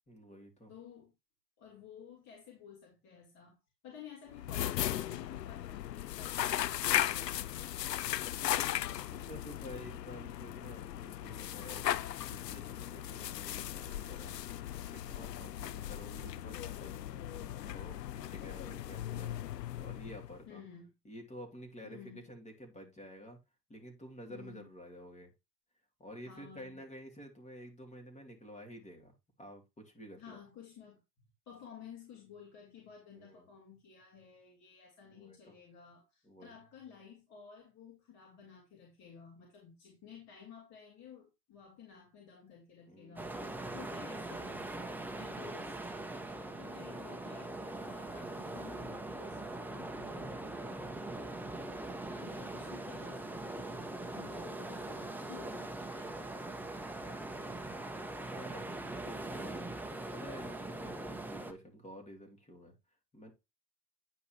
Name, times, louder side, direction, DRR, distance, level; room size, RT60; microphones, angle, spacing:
voice 1, 0.1-0.7 8.3-8.8 9.1-11.9 12.2-19.4 19.8-20.6 21.0-23.4 23.7-25.3 26.0-29.1 29.4-30.4 33.1-33.5 35.1-35.5 36.2-36.5 42.9-43.6 46.2-46.5 57.0-57.8 58.3-59.7 60.1-62.7 63.1-63.3, equal, 15° left, 3.0 m, -51 dB
voice 2, 0.7-1.1 1.6-7.5 20.5-20.9 21.8-22.3 24.3-24.7 26.2-26.8 30.2-31.0 31.5-44.8 45.2-45.9 46.6-50.9 52.1-56.5, left 7 dB, 35° left, 3.7 m, -53 dB
sound 1, 4.3-20.4, left 12 dB, 80° left, 0.6 m, -37 dB
sound 2, 43.2-61.5, right 2 dB, 5° right, 1.2 m, -42 dB
10.0 x 5.4 x 3.0 m
figure-of-eight pair, 95°, 48 cm